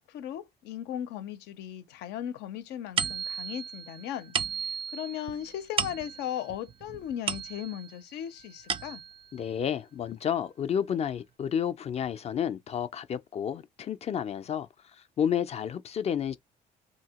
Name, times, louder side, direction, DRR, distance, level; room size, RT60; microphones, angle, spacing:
voice 1, 0.0-4.3 4.9-9.0, left 10 dB, 85° left, 0.6 m, -37 dB
sound 1, 3.0-8.0 8.4-9.3, right 7 dB, 30° right, 0.4 m, -34 dB
voice 2, 9.3-16.4, left 8 dB, 40° left, 0.4 m, -31 dB
2.8 x 2.7 x 2.9 m
cardioid pair, 110°, 17 cm